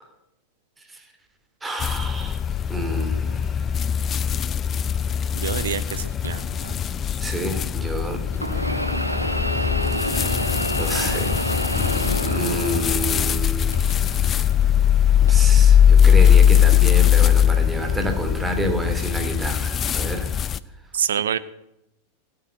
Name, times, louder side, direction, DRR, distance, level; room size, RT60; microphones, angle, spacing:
voice 1, 1.6-2.4 2.7-3.4 7.2-8.8 10.8-11.3 11.7-13.9 15.2-20.3, right 1 dB, 10° right, 6 dB, 2.7 m, -29 dB
sound 1, 1.8-20.6, left 9 dB, 25° left, 0.5 m, -20 dB
voice 2, 5.3-6.8 20.9-21.4, right 9 dB, 65° right, 16 dB, 0.6 m, -27 dB
sound 2, 6.2-6.3 8.3-13.4 13.7-14.5 15.3-15.4 16.4-16.5, equal, 90° right, 1.3 m, -28 dB
16.0 x 9.1 x 7.9 m, 0.85 s
figure-of-eight pair, 90°, 0 cm